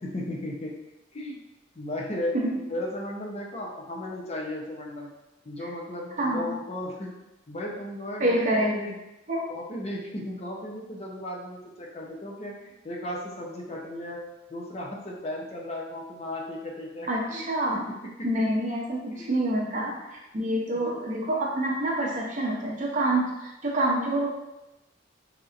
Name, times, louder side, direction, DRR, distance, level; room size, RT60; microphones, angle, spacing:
voice 1, 0.0-0.7 1.1-1.4 1.8-5.1 5.4-7.1 7.5-8.9 9.5-14.2 14.5-17.4 17.7-18.4 19.1-19.5 20.7-21.0, left 1 dB, 35° left, -2 dB, 0.5 m, -35 dB
voice 2, 6.2-6.5 8.2-8.8 9.3-9.5 17.1-17.8 18.2-24.3, right 1 dB, 40° right, -2 dB, 0.6 m, -27 dB
4.2 x 2.7 x 2.4 m, 0.96 s
head